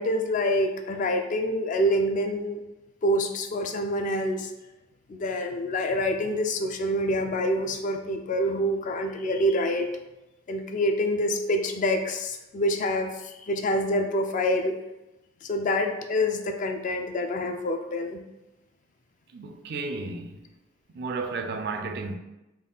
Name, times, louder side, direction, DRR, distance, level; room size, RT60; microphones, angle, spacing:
voice 1, 0.0-2.6 3.0-4.5 5.1-9.9 10.5-14.7 15.4-18.2, left 1 dB, 45° left, 0.3 m, -26 dB
voice 2, 19.3-20.4 20.9-22.2, right 3 dB, 60° right, 0.4 m, -33 dB
3.6 x 2.3 x 3.8 m
head